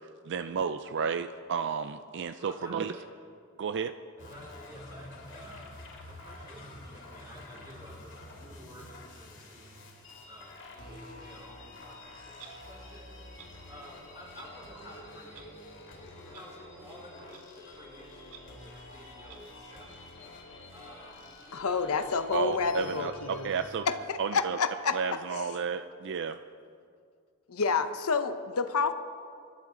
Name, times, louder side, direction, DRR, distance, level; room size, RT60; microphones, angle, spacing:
voice 1, 0.3-2.9 3.6-3.9 22.3-23.1 23.4-23.8 24.2-24.6 24.9-26.4, right 6 dB, 55° right, 10 dB, 0.4 m, -32 dB
voice 2, 2.4-3.1 4.2-5.7 6.0-9.8 10.2-11.6 11.8-15.5 16.2-20.0 20.7-21.2 21.5-22.2 23.9-24.0 24.3-24.4, equal, 20° right, -5 dB, 4.8 m, -51 dB
sound 1, 4.2-23.8, left 2 dB, 55° left, 2.9 m, -48 dB
Clock, 12.4-12.5 13.4-13.5 14.4-14.5 15.3-15.4 16.3-16.4 17.3-17.4 18.3-18.4 19.3-19.4, right 8 dB, 85° right, 1.3 m, -50 dB
voice 3, 21.5-23.5 23.9-25.0 25.3-25.6 27.5-28.9, left 5 dB, 75° left, 10 dB, 0.7 m, -29 dB
25.0 x 12.0 x 3.8 m, 2.3 s
head